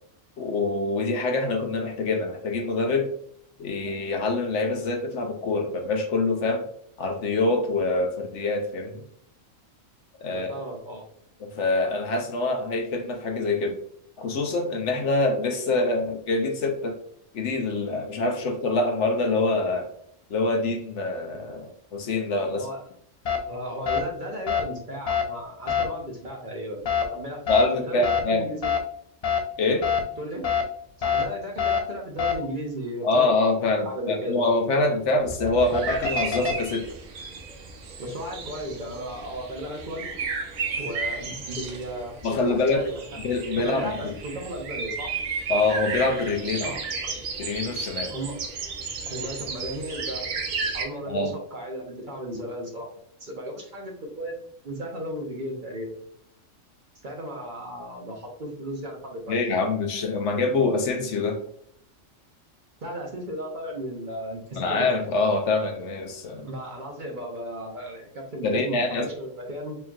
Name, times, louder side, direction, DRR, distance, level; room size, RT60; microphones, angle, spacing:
voice 1, 0.4-3.1 3.6-6.7 7.0-9.0 10.2-10.5 11.4-13.8 14.2-17.0 17.3-19.9 20.3-22.7 27.5-28.5 29.6-29.9 33.0-36.9 42.2-42.8 43.2-44.1 45.5-46.8 47.4-48.1 51.1-51.3 59.3-61.4 64.6-66.5 68.4-69.1, left 3 dB, 65° left, 4 dB, 1.0 m, -25 dB
voice 2, 10.3-11.1 22.6-22.8 23.4-27.4 27.7-28.7 30.2-30.5 31.0-33.3 33.5-34.4 38.0-40.1 40.8-43.0 43.6-45.1 46.6-47.2 48.1-48.4 49.0-50.3 50.7-52.9 53.2-56.0 57.0-59.4 62.8-65.0 66.4-69.8, equal, 45° right, 0 dB, 0.9 m, -35 dB
sound 1, 23.2-23.4 23.9-24.0 24.5-24.6 25.1-25.2 25.7-25.8 26.8-27.0 27.5-27.6 28.0-28.2 28.6-28.8 29.2-29.4 29.8-30.0 30.4-30.6 31.0-31.2 31.6-31.8 32.2-32.3 35.2-36.5, left 7 dB, 45° left, 0.4 m, -24 dB
sound 2, 35.6-50.8, right 4 dB, 85° right, 1.2 m, -33 dB
4.4 x 2.9 x 2.3 m, 0.68 s
omnidirectional pair, 1.3 m